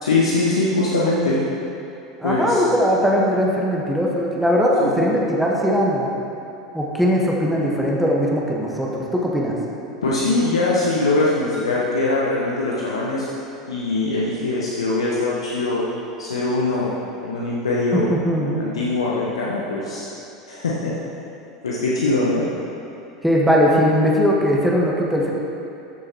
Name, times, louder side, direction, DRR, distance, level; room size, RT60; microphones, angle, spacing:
voice 1, 0.0-1.4 2.2-2.6 4.8-5.1 10.0-13.2 13.7-15.8 16.2-16.9 17.2-18.1 18.6-20.0 20.5-20.9 21.6-22.5, left 2 dB, 75° left, -6 dB, 1.0 m, -22 dB
voice 2, 2.2-6.1 6.7-9.5 17.9-18.5 23.2-25.3, equal, ahead, -3 dB, 1.3 m, -19 dB
13.0 x 6.5 x 3.0 m, 2.7 s
figure-of-eight pair, 80°, 3 cm